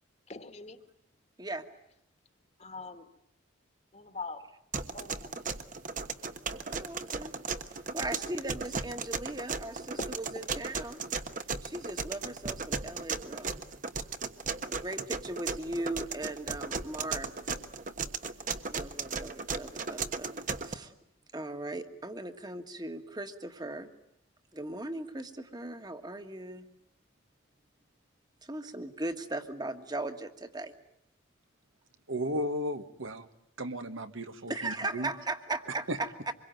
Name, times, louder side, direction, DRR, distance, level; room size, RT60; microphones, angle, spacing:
voice 1, 0.3-0.8 2.6-3.1 3.9-4.5 4.9-5.4, left 3 dB, 35° left, 9 dB, 1.8 m, -43 dB
sound 1, 4.7-20.7, right 4 dB, 40° right, 1.3 m, -36 dB
voice 2, 6.7-7.3 7.7-11.0 11.6-13.6 14.7-17.3 18.7-20.9 21.3-23.9 24.5-26.7 28.4-30.7 34.5-36.3, right 2 dB, 20° right, 8 dB, 1.6 m, -38 dB
voice 3, 32.1-33.3 33.6-35.1 35.9-36.0, equal, 75° right, 8 dB, 1.6 m, -34 dB
26.0 x 22.5 x 9.1 m, 0.76 s
head